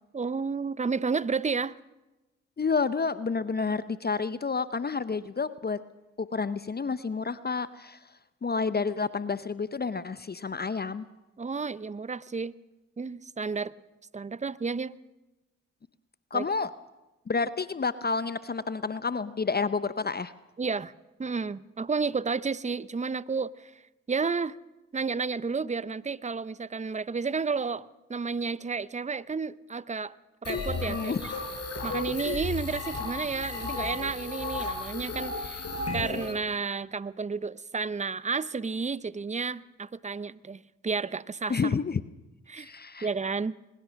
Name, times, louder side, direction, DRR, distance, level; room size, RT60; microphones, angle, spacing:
voice 1, 0.1-1.8 11.4-12.5 13.0-13.7 14.1-14.9 16.3-16.4 20.6-20.9 21.2-23.7 24.1-24.6 24.9-30.1 30.4-31.3 31.8-35.7 35.9-41.6 42.5-42.7 43.0-43.6, right 4 dB, 20° right, 19 dB, 0.7 m, -31 dB
voice 2, 2.6-5.8 6.2-8.0 8.4-11.1 16.3-16.7 17.3-20.3 30.9-31.2 41.5-42.0 42.6-43.1, left 4 dB, 30° left, 15 dB, 0.8 m, -29 dB
sound 1, 30.4-36.3, left 3 dB, 50° left, 5.6 m, -34 dB
22.0 x 21.0 x 6.4 m, 1.0 s
hypercardioid pair, 45°, 32 cm